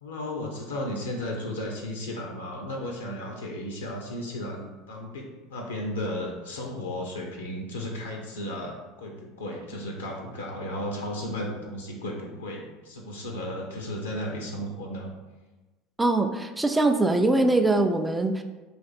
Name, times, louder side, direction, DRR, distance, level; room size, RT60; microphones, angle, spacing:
voice 1, 0.0-15.1, left 1 dB, 80° left, 0 dB, 0.6 m, -34 dB
voice 2, 16.0-18.4, right 2 dB, 10° right, 7 dB, 0.4 m, -22 dB
3.3 x 2.5 x 4.1 m, 1.2 s
hypercardioid pair, 75°, 0 cm